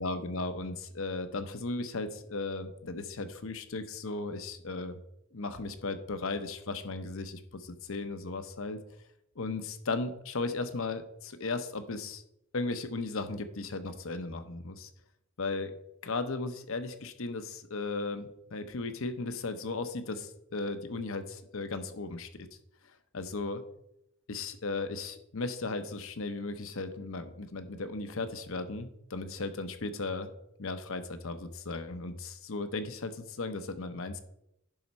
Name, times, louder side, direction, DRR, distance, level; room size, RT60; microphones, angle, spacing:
voice 1, 0.0-5.0 5.3-8.8 9.4-12.2 12.5-14.9 15.4-15.7 16.0-22.5 23.1-23.6 24.3-30.3 30.6-34.2, left 3 dB, 65° left, 10 dB, 0.8 m, -36 dB
10.5 x 4.2 x 5.4 m, 0.81 s
head